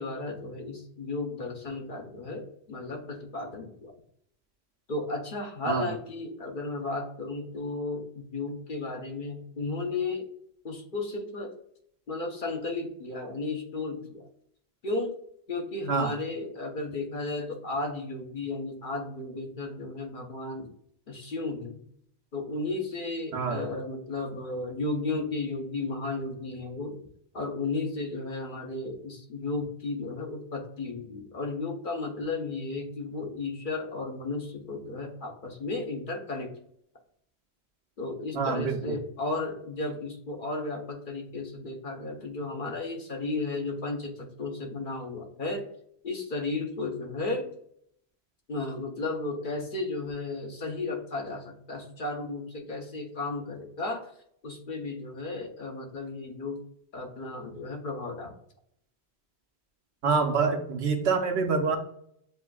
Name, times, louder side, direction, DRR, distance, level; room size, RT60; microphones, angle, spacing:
voice 1, 0.0-3.9 4.9-10.3 10.6-11.5 12.1-14.2 14.8-15.1 15.5-20.7 21.1-21.8 22.3-27.0 27.3-36.5 38.0-45.6 46.0-47.5 48.5-54.1 54.4-56.6 56.9-58.3, left 3 dB, 55° left, 1 dB, 0.9 m, -34 dB
voice 2, 23.3-23.6 38.3-39.0 60.0-61.8, right 5 dB, 85° right, 3 dB, 1.0 m, -26 dB
7.4 x 2.5 x 2.3 m, 0.68 s
omnidirectional pair, 1.1 m